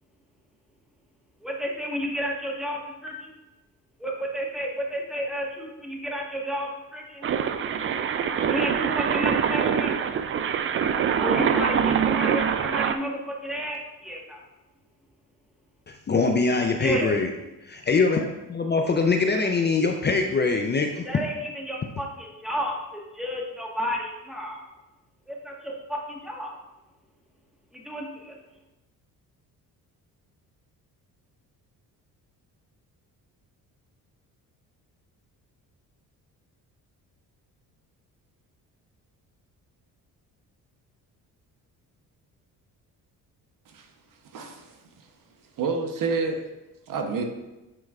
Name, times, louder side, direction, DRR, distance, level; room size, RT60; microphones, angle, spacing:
voice 1, 1.4-3.3 4.0-7.3 8.4-9.9 11.2-14.4 16.8-17.1 21.0-24.7 25.3-26.5 27.7-28.4, equal, ahead, -2 dB, 1.3 m, -32 dB
sound 1, 7.2-13.0, right 7 dB, 35° right, 0.4 m, -24 dB
voice 2, 15.9-17.3 17.6-21.1, left 4 dB, 30° left, 3 dB, 0.5 m, -23 dB
voice 3, 44.3-45.1 45.6-46.4 46.9-47.2, right 4 dB, 60° right, 4 dB, 0.9 m, -29 dB
8.7 x 4.4 x 2.4 m, 1.0 s
cardioid pair, 85°, 37 cm